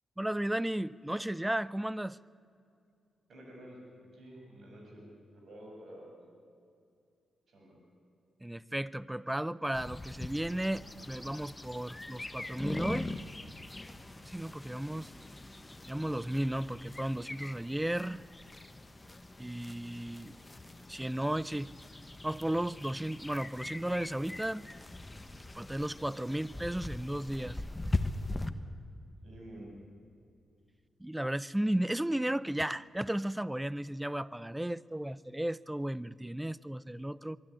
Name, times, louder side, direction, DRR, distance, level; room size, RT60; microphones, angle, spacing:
voice 1, 0.2-2.2 8.4-13.2 14.3-15.1 15.9-18.2 19.4-20.3 20.9-21.7 22.2-24.6 25.5-27.6 31.0-37.4, right 1 dB, 10° right, 21 dB, 0.5 m, -34 dB
voice 2, 3.3-5.1 5.5-6.3 7.5-7.7 29.2-29.7, right 1 dB, 65° right, -1 dB, 7.1 m, -50 dB
sound 1, 9.7-28.5, left 2 dB, 20° left, 1.3 m, -41 dB
23.5 x 12.5 x 9.9 m, 2.4 s
supercardioid pair, 50°, 0 cm